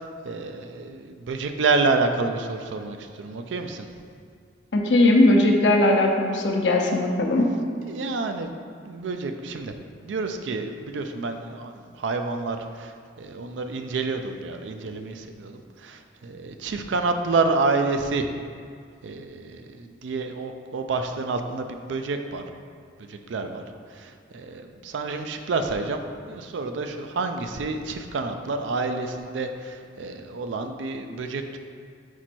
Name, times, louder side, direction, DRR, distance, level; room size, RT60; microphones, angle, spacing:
voice 1, 0.2-3.9 7.8-8.5 8.9-9.7 10.0-18.3 19.0-22.4 23.0-23.6 23.9-31.6, right 3 dB, 90° right, 6 dB, 0.4 m, -28 dB
voice 2, 4.7-7.5, left 2 dB, 80° left, 1 dB, 0.7 m, -19 dB
5.1 x 4.4 x 4.4 m, 2.2 s
head